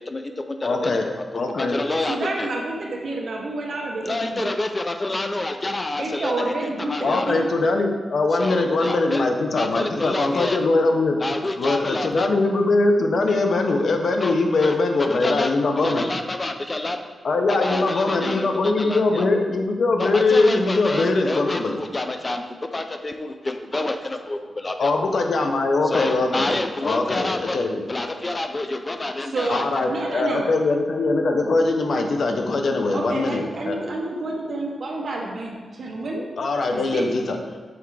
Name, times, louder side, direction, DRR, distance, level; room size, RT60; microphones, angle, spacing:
voice 1, 0.0-1.2 1.6-2.5 4.0-7.3 8.4-9.3 9.5-10.6 11.2-12.3 14.2-14.4 14.6-15.5 15.8-17.0 17.5-18.5 18.8-19.3 20.0-24.9 25.9-27.6 27.9-29.6, left 2 dB, 25° left, 6 dB, 0.4 m, -28 dB
voice 2, 0.6-1.1 1.3-1.8 7.0-11.2 11.6-16.1 17.2-21.8 24.8-26.6 26.8-27.9 29.5-33.8 36.4-37.4, left 3 dB, 65° left, 4 dB, 0.7 m, -21 dB
voice 3, 1.9-4.5 6.0-7.4 29.2-30.5 32.9-36.3 36.9-37.1, right 2 dB, 55° right, -1 dB, 1.1 m, -29 dB
7.1 x 3.4 x 4.7 m, 1.5 s
wide cardioid pair, 115°, 0 cm